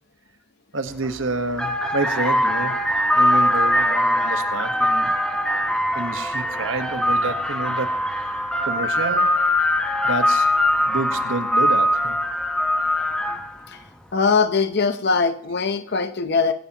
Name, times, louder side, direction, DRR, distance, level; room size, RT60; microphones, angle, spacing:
voice 1, 0.7-2.8 3.1-5.1 5.9-8.0 8.6-9.3 10.0-10.5 10.9-12.2, right 3 dB, 65° right, 7 dB, 1.3 m, -28 dB
sound 1, 0.9-1.1 1.5-13.6, left 1 dB, 5° left, 1.0 m, -21 dB
voice 2, 14.1-16.5, left 4 dB, 50° left, 9 dB, 0.7 m, -21 dB
25.5 x 12.0 x 2.9 m, 0.71 s
head